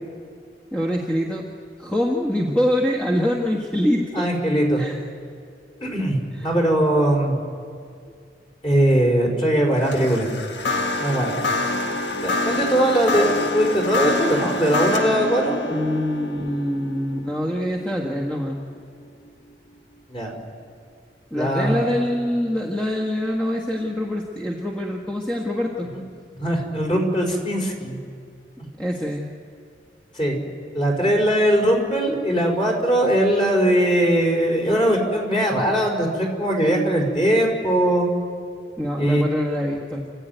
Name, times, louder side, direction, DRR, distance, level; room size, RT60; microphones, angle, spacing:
voice 1, 0.7-1.5 1.8-4.3 4.8-5.0 15.7-18.6 21.3-25.9 28.8-29.3 38.8-40.1, equal, 5° left, -2 dB, 1.6 m, -24 dB
voice 2, 4.1-4.8 5.8-7.4 8.6-10.3 11.0-11.3 12.2-15.6 20.1-20.3 21.3-21.9 25.9-26.0 26.4-28.0 30.1-30.4 30.7-38.1 39.0-39.2, right 1 dB, 30° left, 0 dB, 4.9 m, -20 dB
sound 1, 9.7-19.1, left 2 dB, 85° left, 1.7 m, -27 dB
30.0 x 13.5 x 9.3 m, 2.3 s
head